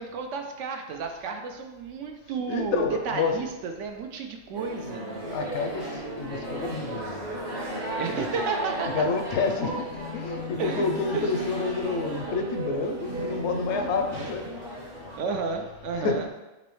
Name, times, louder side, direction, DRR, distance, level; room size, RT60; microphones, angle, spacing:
voice 1, 0.0-5.2 8.0-9.1 10.6-10.9 11.1-11.3 15.2-16.3, right 5 dB, 85° right, 4 dB, 1.0 m, -32 dB
voice 2, 2.5-3.5 5.3-5.9 6.2-7.0 8.1-8.5 8.9-14.4 15.9-16.2, left 4 dB, 75° left, 5 dB, 0.8 m, -29 dB
sound 1, 4.5-15.2, right 1 dB, 65° right, 1.5 m, -35 dB
5.4 x 3.1 x 3.1 m, 1.1 s
omnidirectional pair, 1.2 m